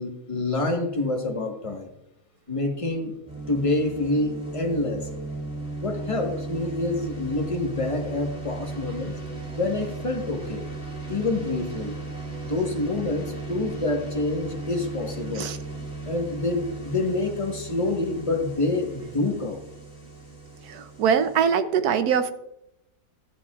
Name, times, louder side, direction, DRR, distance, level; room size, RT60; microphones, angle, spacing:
voice 1, 0.0-1.9 2.5-3.2 3.5-5.1 5.8-9.1 9.5-10.6 11.1-12.0 12.4-15.5 16.1-19.6, left 2 dB, 20° left, 2 dB, 1.2 m, -27 dB
sound 1, 3.3-21.5, right 3 dB, 5° right, 3.1 m, -36 dB
voice 2, 20.7-22.3, right 7 dB, 70° right, 10 dB, 1.2 m, -22 dB
14.0 x 10.5 x 2.4 m, 0.86 s
omnidirectional pair, 1.7 m